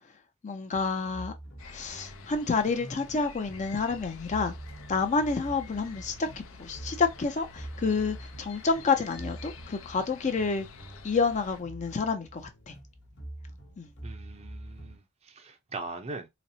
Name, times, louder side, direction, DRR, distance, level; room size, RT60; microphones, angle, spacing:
voice 1, 0.4-1.3 1.6-4.5 4.9-6.3 6.6-10.7 11.0-12.7 13.8-13.9, left 4 dB, 35° left, 0.5 m, -29 dB
sound 1, 0.7-15.0, right 1 dB, 60° left, 1.1 m, -45 dB
sound 2, 1.6-11.6, left 4 dB, 80° left, 0.6 m, -49 dB
voice 2, 14.0-16.3, right 3 dB, 30° right, 0.5 m, -41 dB
4.0 x 2.0 x 2.6 m
head